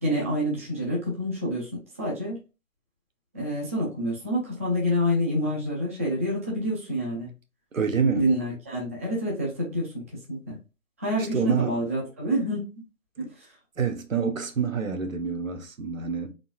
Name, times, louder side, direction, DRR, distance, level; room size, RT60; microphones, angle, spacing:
voice 1, 0.0-2.4 3.3-7.3 8.1-10.0 10.3-10.6 11.0-12.7 13.2-13.5, equal, 10° right, 0.5 m, -27 dB
voice 2, 7.7-8.3 11.2-11.8 13.2-13.3 13.8-16.3, right 6 dB, 70° right, 1.2 m, -27 dB
4.0 x 3.8 x 2.4 m
figure-of-eight pair, 145°, 41 cm